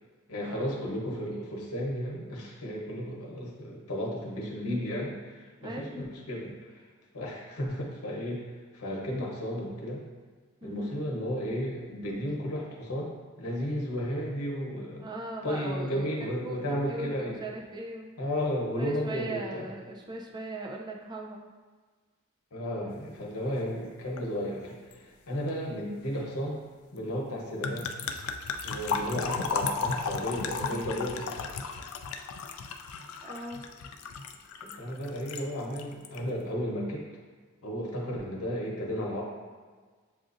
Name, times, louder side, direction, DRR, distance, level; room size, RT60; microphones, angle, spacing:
voice 1, 0.3-6.8 7.1-8.5 8.7-10.0 10.6-13.1 13.4-15.1 15.4-17.4 18.2-19.7 22.5-26.6 26.9-27.9 28.6-31.5 34.6-37.0 37.6-39.2, equal, 90° left, -2 dB, 0.9 m, -33 dB
voice 2, 5.6-5.9 10.6-10.9 15.0-16.1 16.4-16.6 16.9-18.1 18.8-21.5 33.2-33.6, right 2 dB, 20° right, 0 dB, 0.4 m, -39 dB
sound 1, 24.2-24.3 24.6-24.9 27.6-35.5 35.7-36.2, left 5 dB, 70° left, 0.3 m, -34 dB
7.2 x 2.5 x 2.5 m, 1.5 s
head